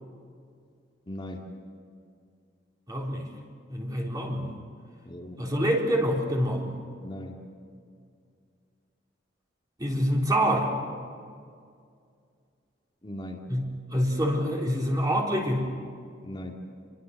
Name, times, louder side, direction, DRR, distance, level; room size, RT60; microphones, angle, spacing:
voice 1, 1.1-1.5 5.1-5.4 7.0-7.4 13.0-13.5 16.2-16.6, left 1 dB, 25° left, 0 dB, 2.4 m, -39 dB
voice 2, 2.9-3.3 3.7-4.5 5.4-6.7 9.8-10.8 13.5-15.7, equal, 20° right, -1 dB, 3.8 m, -26 dB
29.0 x 23.0 x 6.7 m, 2.2 s
head